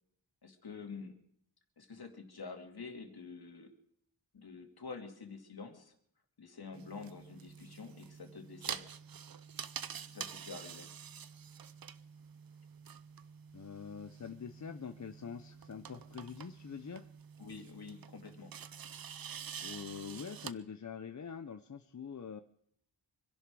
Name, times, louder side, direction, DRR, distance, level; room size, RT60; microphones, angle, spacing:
voice 1, 0.4-1.2 1.8-3.7 4.3-5.9 6.4-8.9 9.6-9.7 9.9-10.9 17.4-18.5, left 4 dB, 55° left, 4 dB, 2.7 m, -48 dB
sound 1, 6.7-20.5, right 8 dB, 50° right, 0.7 m, -47 dB
voice 2, 13.5-17.1 19.6-22.4, left 7 dB, 40° left, 8 dB, 0.7 m, -45 dB
25.5 x 11.0 x 4.8 m, 0.68 s
wide cardioid pair, 135°, 44 cm